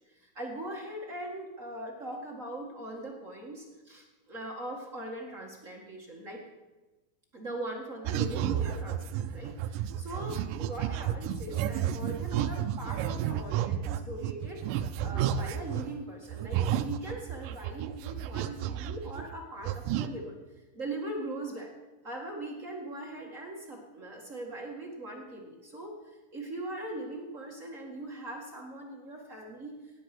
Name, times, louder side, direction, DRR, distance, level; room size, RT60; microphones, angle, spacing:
voice 1, 0.0-6.4 7.3-20.3 20.7-21.7 22.0-29.7, right 1 dB, 35° right, -1 dB, 1.3 m, -40 dB
sound 1, 8.1-15.9 16.3-19.4 19.6-20.1, right 10 dB, 80° right, 1.9 m, -32 dB
17.5 x 10.0 x 6.1 m, 1.2 s
omnidirectional pair, 4.5 m